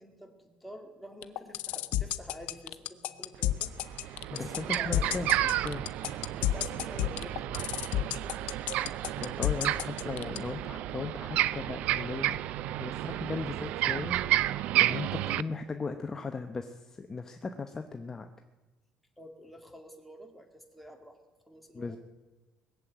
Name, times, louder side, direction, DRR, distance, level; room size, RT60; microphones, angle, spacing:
voice 1, 0.0-3.7 4.3-5.2 6.4-7.7 9.4-9.6 19.2-21.2 21.5-22.0, equal, ahead, 2 dB, 2.2 m, -48 dB
sound 1, 1.2-10.4, left 14 dB, 80° left, 0.7 m, -30 dB
sound 2, 3.3-3.4 3.8-15.4, right 13 dB, 70° right, 0.5 m, -31 dB
voice 2, 4.4-5.3 5.6-5.8 9.2-12.4 12.8-14.2 14.7-18.3 21.7-22.0, left 4 dB, 20° left, 6 dB, 0.8 m, -37 dB
20.0 x 7.8 x 9.2 m, 1.2 s
cardioid pair, 140°, 2 cm